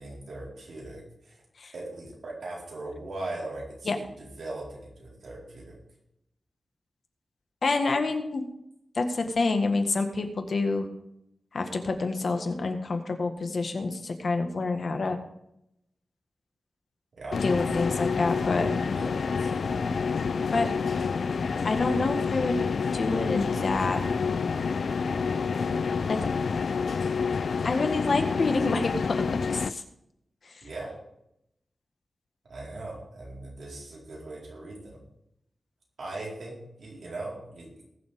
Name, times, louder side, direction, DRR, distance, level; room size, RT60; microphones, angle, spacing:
voice 1, 0.0-1.4 1.7-5.8 15.0-15.1 17.1-17.4 18.9-19.8 30.6-31.0 32.5-35.0 36.0-37.9, right 2 dB, 75° right, -4 dB, 4.6 m, -40 dB
voice 2, 7.6-8.4 8.9-10.9 11.5-15.2 17.4-18.7 20.5-20.7 21.6-22.5 22.9-24.0 26.1-26.2 27.6-29.8, left 3 dB, 50° left, 5 dB, 1.6 m, -27 dB
sound 1, 17.3-29.7, left 5 dB, 70° left, 0.5 m, -28 dB
20.0 x 7.4 x 3.7 m, 0.79 s
wide cardioid pair, 170°, 0 cm